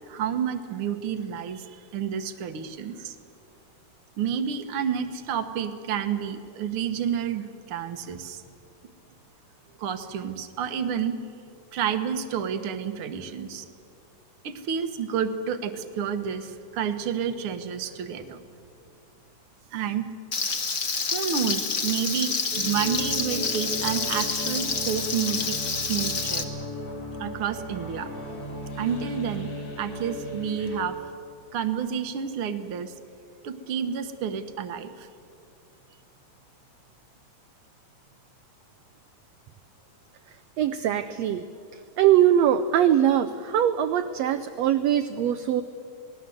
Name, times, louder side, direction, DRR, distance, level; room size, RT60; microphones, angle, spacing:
voice 1, 0.1-3.2 4.2-8.4 9.8-11.2 11.7-13.7 14.4-18.4 19.7-20.1 21.1-26.5 27.2-28.1 28.8-29.5 29.8-31.0 31.5-32.9 33.4-35.1, right 8 dB, 55° right, 9 dB, 1.8 m, -30 dB
Frying (food), 20.3-26.4, left 4 dB, 35° left, 1.4 m, -28 dB
sound 1, 22.5-30.8, equal, 70° left, 4.5 m, -36 dB
voice 2, 40.6-41.4 42.0-45.6, right 10 dB, 70° right, 8 dB, 1.7 m, -22 dB
27.5 x 19.0 x 7.8 m, 2.4 s
omnidirectional pair, 3.5 m